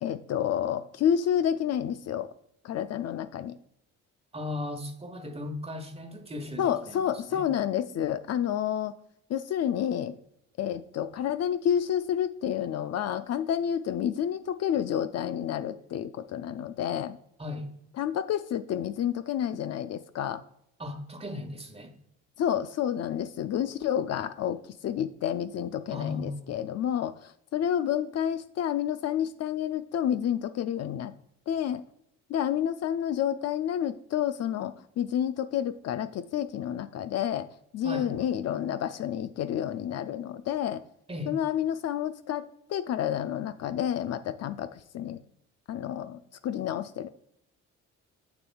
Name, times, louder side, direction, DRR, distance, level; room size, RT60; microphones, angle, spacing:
voice 1, 0.0-2.3 2.6-3.6 6.6-8.9 9.3-10.2 10.6-17.2 18.0-20.4 22.4-31.1 31.5-31.8 32.3-37.5 37.7-40.8 41.3-42.4 42.7-45.2 45.7-47.1, left 10 dB, 60° left, 12 dB, 0.4 m, -29 dB
voice 2, 4.3-7.0 7.3-7.5 17.4-17.7 20.8-21.9 25.9-26.4 37.8-38.1 41.1-41.4, left 2 dB, 20° right, 6 dB, 1.1 m, -37 dB
6.9 x 6.7 x 2.3 m, 0.74 s
cardioid pair, 90°, 30 cm